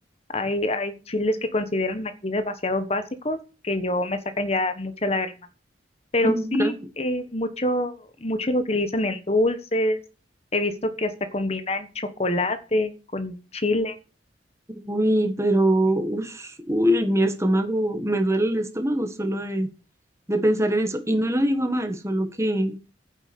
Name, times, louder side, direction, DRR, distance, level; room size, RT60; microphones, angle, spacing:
voice 1, 0.3-3.4 3.6-5.3 6.1-7.9 8.2-10.0 10.5-13.9, left 1 dB, 35° left, 1.3 m, -25 dB
voice 2, 6.2-6.7 14.9-19.7 20.3-22.8, right 1 dB, 15° right, 1.7 m, -23 dB
9.9 x 7.5 x 7.0 m
head